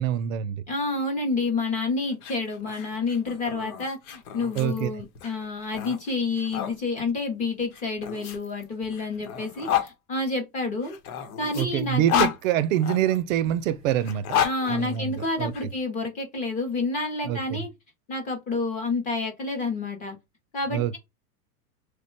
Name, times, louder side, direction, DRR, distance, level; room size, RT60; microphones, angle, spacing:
voice 1, 0.0-0.6 4.6-4.9 11.5-14.4 14.7-15.5 17.2-17.6 20.7-21.0, right 11 dB, 65° right, 0.5 m, -25 dB
voice 2, 0.7-10.9 11.4-12.3 14.4-17.7 18.1-20.2 20.5-21.0, left 3 dB, 20° left, 0.6 m, -29 dB
sound 1, 2.1-6.7 7.7-9.9 10.8-13.2 14.0-15.6, left 9 dB, 85° left, 1.1 m, -31 dB
3.2 x 2.2 x 4.3 m
supercardioid pair, 175°, 43 cm